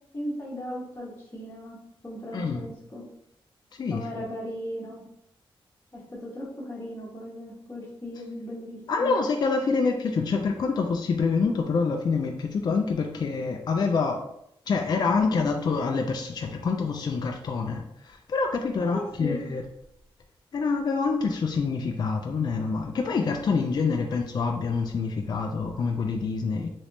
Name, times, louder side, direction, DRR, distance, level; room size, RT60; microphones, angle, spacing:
voice 1, 0.1-1.8 2.0-3.0 3.9-5.0 5.9-9.1 18.8-19.4, equal, 20° left, -5 dB, 1.0 m, -37 dB
voice 2, 2.3-2.6 3.8-4.3 8.9-14.2 14.7-19.6 20.5-26.7, left 4 dB, 45° left, 3 dB, 0.3 m, -26 dB
3.3 x 3.0 x 2.6 m, 0.79 s
wide cardioid pair, 135°, 10 cm